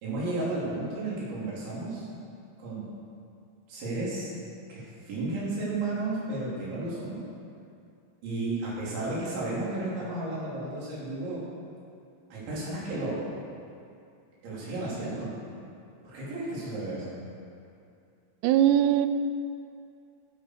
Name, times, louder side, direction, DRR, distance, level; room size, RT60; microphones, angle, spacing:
voice 1, 0.0-2.1 2.6-2.9 3.7-4.3 4.7-7.2 8.2-11.4 12.3-13.2 14.4-15.3 16.0-17.2, right 2 dB, 70° right, -8 dB, 6.2 m, -33 dB
voice 2, 18.4-19.1, right 11 dB, 85° right, 10 dB, 2.4 m, -21 dB
17.0 x 11.0 x 5.0 m, 2.5 s
omnidirectional pair, 5.6 m